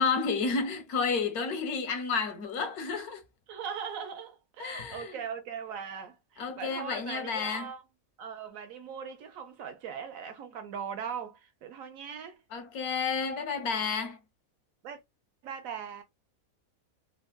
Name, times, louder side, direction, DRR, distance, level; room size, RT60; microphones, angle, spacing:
voice 1, 0.0-3.2 4.6-5.2 6.4-7.7 12.5-14.2, left 5 dB, 85° left, 1.3 m, -31 dB
voice 2, 3.5-7.8 8.2-12.4 14.8-15.0 15.4-16.0, right 7 dB, 70° right, 1.1 m, -40 dB
3.6 x 2.3 x 2.3 m
omnidirectional pair, 1.5 m